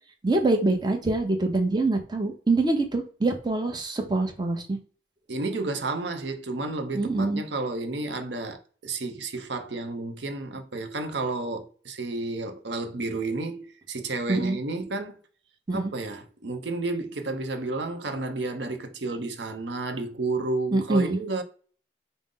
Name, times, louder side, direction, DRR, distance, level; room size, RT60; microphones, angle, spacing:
voice 1, 0.2-4.8 6.9-7.4 14.3-14.6 15.7-15.9 20.7-21.2, right 2 dB, 20° right, 0.6 m, -25 dB
voice 2, 5.3-15.2 15.7-21.4, right 3 dB, 65° right, 0.7 m, -31 dB
5.1 x 2.0 x 3.7 m
head